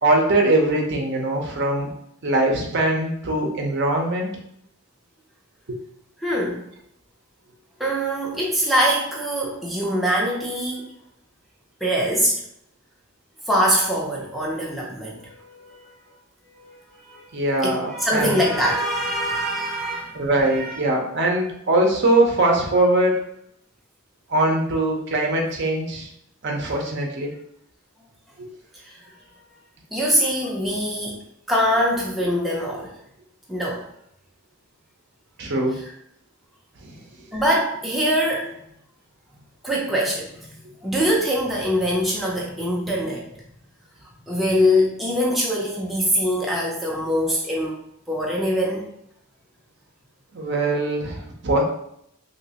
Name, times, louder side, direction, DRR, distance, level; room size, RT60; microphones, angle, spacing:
voice 1, 0.0-1.9 2.2-4.3 5.7-5.8 17.3-18.4 20.1-23.2 24.3-26.1 26.4-27.3 28.4-28.5 30.6-30.8 35.4-35.8 36.8-36.9 50.3-51.6, right 2 dB, 50° right, 1 dB, 0.7 m, -21 dB
voice 2, 6.2-6.7 7.8-10.9 11.8-12.4 13.5-15.8 16.6-16.8 17.1-17.3 17.6-20.8 28.7-29.1 29.9-31.2 31.5-32.9 33.5-33.8 35.8-35.9 37.3-38.6 39.6-40.5 40.8-43.4 44.3-47.7 48.1-48.9, equal, ahead, -4 dB, 0.5 m, -23 dB
3.1 x 2.9 x 2.8 m, 0.72 s
head